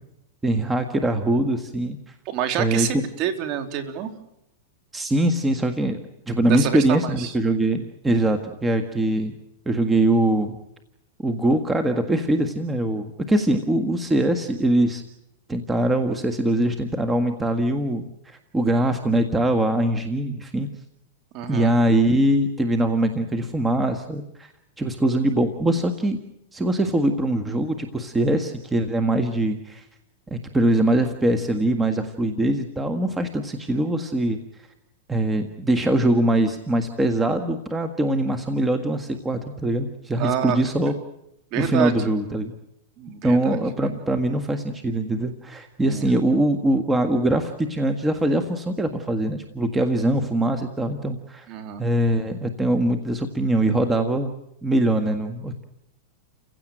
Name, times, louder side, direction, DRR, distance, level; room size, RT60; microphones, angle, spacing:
voice 1, 0.4-2.1 2.6-2.9 4.9-6.0 6.3-9.3 9.6-10.6 11.2-15.0 15.5-20.7 21.5-24.5 24.8-26.2 26.5-29.8 30.3-34.4 35.1-40.9 41.5-42.5 43.2-51.5 51.8-54.3 54.6-55.7, right 1 dB, 10° right, 6 dB, 1.6 m, -22 dB
voice 2, 2.3-4.1 6.5-7.3 21.3-21.7 40.2-40.6 41.5-41.9 43.0-43.6 45.9-46.0 51.5-51.8, right 10 dB, 40° right, 7 dB, 3.5 m, -27 dB
30.0 x 16.0 x 9.2 m, 0.83 s
hypercardioid pair, 140°, 0 cm